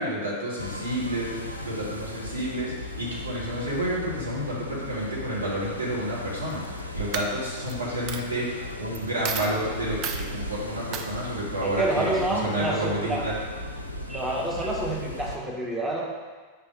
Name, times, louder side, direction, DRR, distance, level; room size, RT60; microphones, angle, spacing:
voice 1, 0.0-6.6 6.9-13.4, right 1 dB, 75° right, -6 dB, 1.8 m, -30 dB
sound 1, 0.6-15.4, left 1 dB, 85° left, 0.5 m, -36 dB
Coin (dropping), 6.5-6.8 7.1-7.7 8.1-8.2 8.9-9.0 9.2-9.5 10.0-10.2 10.9-11.1, right 7 dB, 35° right, 0.5 m, -32 dB
voice 2, 11.6-13.3 14.1-16.1, right 1 dB, 10° right, -4 dB, 1.0 m, -28 dB
5.4 x 3.8 x 5.3 m, 1.3 s
figure-of-eight pair, 90°, 0 cm